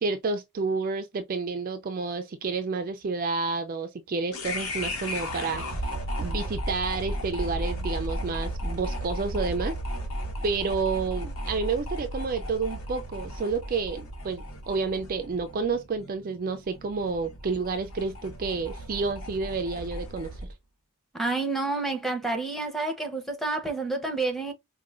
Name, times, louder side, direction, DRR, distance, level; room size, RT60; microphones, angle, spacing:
voice 1, 0.0-5.8 6.2-9.8 10.4-20.5, right 4 dB, 40° right, 0.4 m, -30 dB
sound 1, 4.3-20.5, equal, 75° left, 1.3 m, -34 dB
voice 2, 21.1-24.5, right 3 dB, ahead, 0.8 m, -29 dB
4.7 x 2.2 x 2.4 m
head